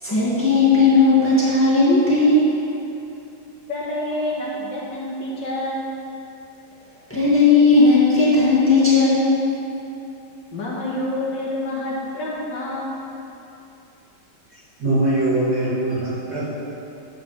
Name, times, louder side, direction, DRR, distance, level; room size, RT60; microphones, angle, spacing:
voice 1, 0.0-2.5 7.1-9.3, left 3 dB, 5° left, -9 dB, 1.6 m, -16 dB
voice 2, 3.7-5.9 10.5-13.0, left 1 dB, 60° left, -6 dB, 1.8 m, -28 dB
voice 3, 14.5-16.5, right 1 dB, 50° right, -10 dB, 2.8 m, -22 dB
10.5 x 7.8 x 3.2 m, 2.8 s
omnidirectional pair, 2.3 m